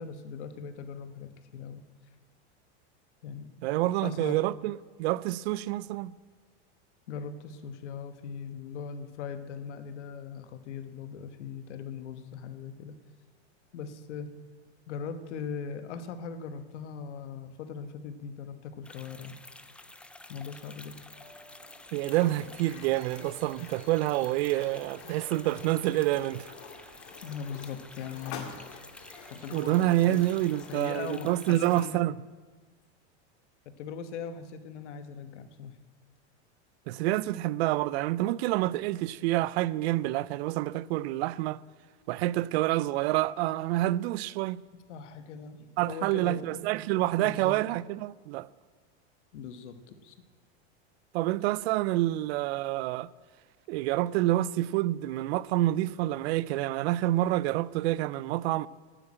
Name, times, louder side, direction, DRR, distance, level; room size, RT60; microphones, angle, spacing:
voice 1, 0.0-1.8 3.2-3.5 4.0-4.4 7.1-13.0 13.7-14.3 14.9-19.4 20.3-21.0 27.2-28.5 29.3-30.3 30.7-32.0 33.8-35.8 44.9-46.6 47.2-47.5 49.3-50.1, left 6 dB, 85° left, 1.2 m, -40 dB
voice 2, 3.6-6.1 21.9-26.5 29.5-32.2 36.9-41.6 42.1-44.6 45.8-48.5 51.1-53.1 53.7-58.7, right 16 dB, 65° right, 0.5 m, -28 dB
sound 1, 18.8-31.9, left 2 dB, 5° left, 0.3 m, -51 dB
sound 2, 20.4-30.5, right 1 dB, 35° right, 4.2 m, -58 dB
sound 3, 22.0-30.9, left 6 dB, 65° left, 2.1 m, -48 dB
9.2 x 8.9 x 8.7 m
supercardioid pair, 130°, 34 cm